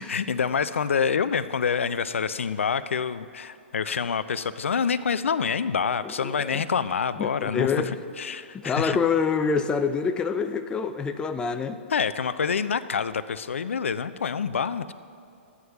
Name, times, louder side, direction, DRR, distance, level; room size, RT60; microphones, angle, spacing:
voice 1, 0.0-9.0 11.9-14.9, left 6 dB, 85° left, 13 dB, 0.3 m, -27 dB
voice 2, 6.2-6.6 7.2-8.0 8.5-11.8, left 5 dB, 15° left, 9 dB, 0.4 m, -26 dB
14.0 x 9.5 x 2.3 m, 2.7 s
hypercardioid pair, 125°, 7 cm